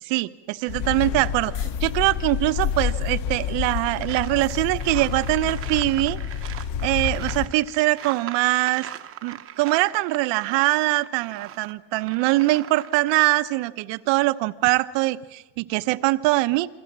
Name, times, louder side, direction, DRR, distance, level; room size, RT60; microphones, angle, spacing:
voice 1, 0.0-6.2 6.8-8.9 9.2-16.7, right 19 dB, 75° right, 14 dB, 1.0 m, -23 dB
sound 1, 0.7-7.5, left 8 dB, 70° left, 1.7 m, -29 dB
sound 2, 3.7-13.5 14.0-14.2, right 11 dB, 30° right, 0.8 m, -40 dB
28.0 x 24.0 x 7.5 m, 1.1 s
cardioid pair, 180°, 44 cm